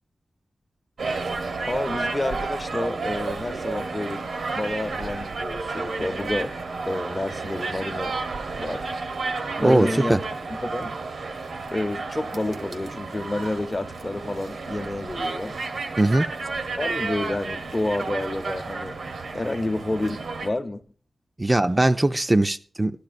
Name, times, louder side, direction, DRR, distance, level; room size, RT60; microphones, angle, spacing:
sound 1, 1.0-20.5, right 3 dB, 85° right, 0.9 m, -31 dB
voice 1, 1.6-4.3 4.5-6.5 6.9-8.1 8.6-8.9 9.6-10.2 10.6-10.9 11.7-15.6 16.8-19.0 19.3-20.8, left 2 dB, 30° left, 0.7 m, -29 dB
voice 2, 9.6-10.2 16.0-16.3 21.4-22.9, right 2 dB, 25° right, 0.4 m, -20 dB
12.0 x 12.0 x 2.5 m
cardioid pair, 70°, 0 cm